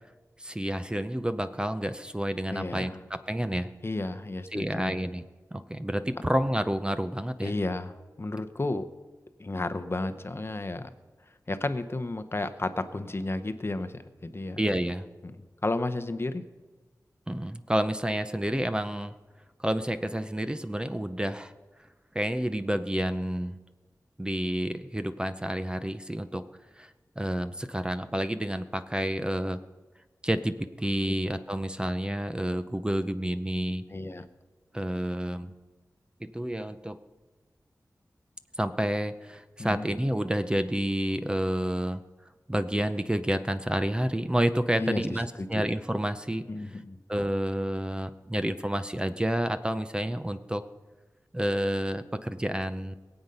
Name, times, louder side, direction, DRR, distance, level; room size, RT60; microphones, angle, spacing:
voice 1, 0.4-3.7 4.5-5.2 5.5-7.5 14.6-15.1 17.3-19.1 19.6-21.5 22.1-23.6 24.2-26.4 26.8-26.9 27.2-29.6 30.2-33.8 34.7-35.5 36.2-37.0 38.6-42.0 42.5-46.4 47.1-50.6 51.3-53.0, right 1 dB, 15° right, 10 dB, 0.6 m, -29 dB
voice 2, 2.5-3.0 3.8-5.0 7.4-8.9 9.4-10.9 11.5-14.6 15.6-16.4 33.9-34.3 39.6-39.9 44.8-45.6 46.5-47.0, left 2 dB, 40° left, 11 dB, 0.8 m, -32 dB
22.0 x 8.0 x 5.4 m, 1.3 s
wide cardioid pair, 80°, 7 cm